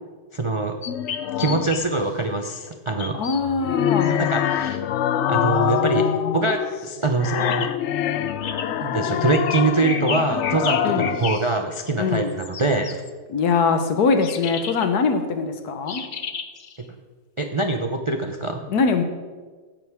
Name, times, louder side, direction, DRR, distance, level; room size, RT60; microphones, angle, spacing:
voice 1, 0.3-0.8 1.4-3.2 4.1-4.8 5.3-7.7 8.8-13.0 16.8-16.9 17.4-18.7, right 3 dB, 45° right, 4 dB, 0.4 m, -24 dB
sound 1, 0.8-1.8 3.0-3.4 4.0-4.3 7.4-7.7 8.3-8.7 9.3-11.4 12.1-13.1 14.2-14.9 15.9-16.8, left 6 dB, 50° left, 0.6 m, -32 dB
sound 2, 0.9-1.8 3.4-11.5, left 10 dB, 85° left, 0.6 m, -25 dB
voice 2, 3.1-4.2 10.8-11.1 12.0-12.3 13.3-16.0 18.7-19.0, left 5 dB, 70° left, 8 dB, 1.5 m, -22 dB
16.0 x 11.0 x 3.6 m, 1.4 s
omnidirectional pair, 1.8 m